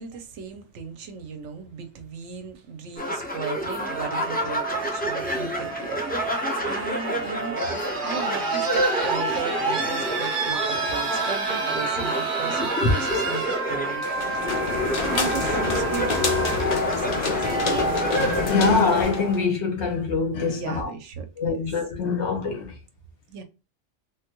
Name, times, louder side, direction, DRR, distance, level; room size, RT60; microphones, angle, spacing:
voice 1, 0.0-13.4 13.7-14.6 15.1-17.9 20.5-21.5 23.3-23.4, right 5 dB, 75° right, 0.9 m, -36 dB
sound 1, 3.0-19.0, equal, 10° left, 0.6 m, -29 dB
sound 2, 3.8-17.8 19.0-19.1, right 4 dB, 45° right, 0.9 m, -30 dB
sound 3, 14.0-19.5, left 3 dB, 50° left, 0.8 m, -26 dB
voice 2, 18.4-20.9 21.4-22.7, left 4 dB, 70° left, 1.2 m, -24 dB
3.5 x 2.2 x 2.9 m
omnidirectional pair, 1.2 m